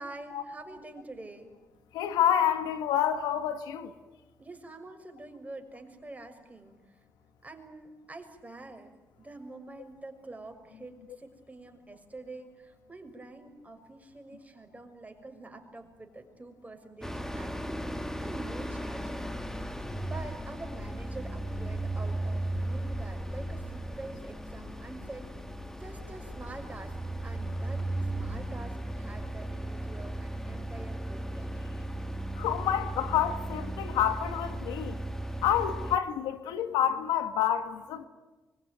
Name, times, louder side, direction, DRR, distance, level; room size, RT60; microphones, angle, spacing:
voice 1, 0.0-1.5 4.4-6.8 7.4-8.9 9.2-19.7 20.0-25.3 25.8-27.0 27.2-27.9 28.1-31.7, right 2 dB, 20° right, 5 dB, 6.3 m, -46 dB
voice 2, 1.9-3.9 32.4-35.0 35.4-38.1, left 10 dB, 90° left, 9 dB, 1.8 m, -28 dB
sound 1, 17.0-36.0, right 1 dB, 5° left, 2.2 m, -36 dB
24.5 x 22.5 x 9.5 m, 1.2 s
supercardioid pair, 55°, 7 cm